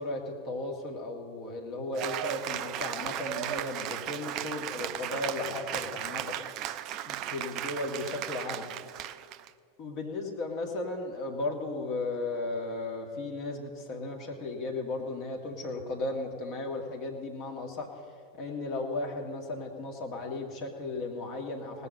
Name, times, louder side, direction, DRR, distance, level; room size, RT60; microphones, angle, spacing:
voice 1, 0.0-6.3 7.1-8.6 9.8-18.0 18.3-21.9, left 2 dB, 40° left, 1 dB, 2.2 m, -35 dB
Cheering / Applause, 1.9-9.5, right 12 dB, 40° right, 0.4 m, -36 dB
18.0 x 7.1 x 6.6 m, 2.1 s
figure-of-eight pair, 90°, 0 cm